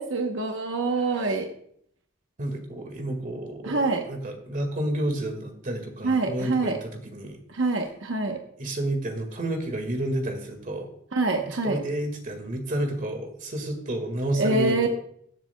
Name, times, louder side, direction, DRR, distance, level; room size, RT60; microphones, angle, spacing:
voice 1, 0.0-1.5 3.6-4.0 6.0-6.8 7.5-8.4 11.1-11.8 14.3-14.9, right 3 dB, 85° right, 4 dB, 1.0 m, -25 dB
voice 2, 2.4-7.4 8.6-10.9 11.4-14.9, right 1 dB, 45° right, 5 dB, 1.9 m, -30 dB
21.0 x 7.5 x 2.3 m, 0.67 s
head